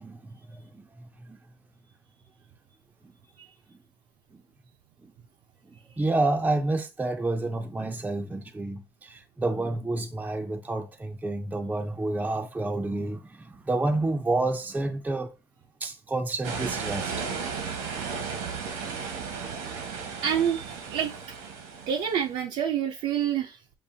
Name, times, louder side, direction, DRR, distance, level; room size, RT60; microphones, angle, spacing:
voice 1, 0.0-1.4 3.0-3.1 3.7-3.8 4.3-4.4 5.0-5.1 5.6-15.3 15.8-17.3, right 2 dB, 10° right, 0.5 m, -29 dB
sound 1, 16.4-22.3, right 5 dB, 80° right, 1.3 m, -35 dB
voice 2, 20.2-21.1 21.9-23.6, right 8 dB, 60° right, 0.6 m, -27 dB
7.1 x 2.6 x 2.7 m
supercardioid pair, 100°, 13 cm